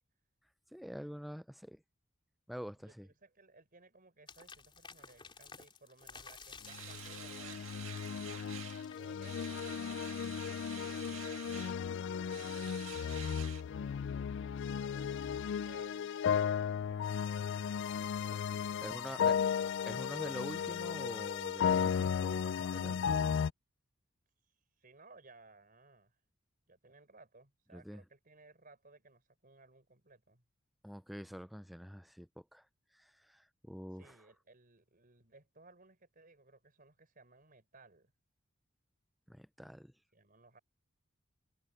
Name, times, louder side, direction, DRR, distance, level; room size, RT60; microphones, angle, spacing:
voice 1, 0.7-1.8 2.5-3.1 18.3-18.4 18.8-19.4 19.9-23.1 27.7-28.0 30.8-32.7 32.9-34.2 39.3-39.9, equal, ahead, 0.5 m, -46 dB
voice 2, 2.8-7.8 9.0-10.5 10.9-13.3 15.5-17.9 18.2-19.3 24.8-26.2 26.7-30.4 33.9-38.1 40.1-40.6, right 3 dB, 45° right, 5.3 m, -61 dB
sound 1, 4.3-9.8, left 5 dB, 25° left, 3.4 m, -54 dB
sound 2, 6.7-23.5, left 7 dB, 60° left, 0.3 m, -35 dB
sound 3, 6.7-8.9 9.2-11.8 12.3-13.6, right 10 dB, 75° right, 2.0 m, -49 dB
head